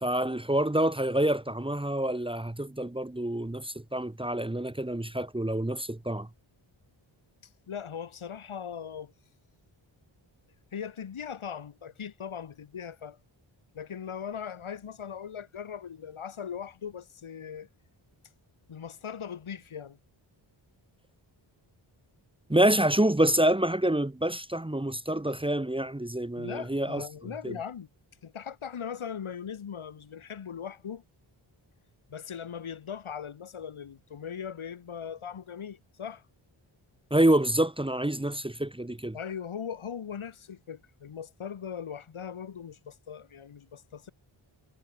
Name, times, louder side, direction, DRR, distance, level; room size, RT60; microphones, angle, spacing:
voice 1, 0.0-6.3 22.5-27.0 27.4-27.5 37.1-39.1, right 1 dB, 10° right, 1.6 m, -27 dB
voice 2, 7.4-9.1 10.7-13.2 13.7-17.7 18.7-20.0 26.4-27.9 28.2-31.0 32.1-36.3 39.1-44.1, left 7 dB, 80° left, 4.7 m, -39 dB
wide cardioid pair, 80°, 48 cm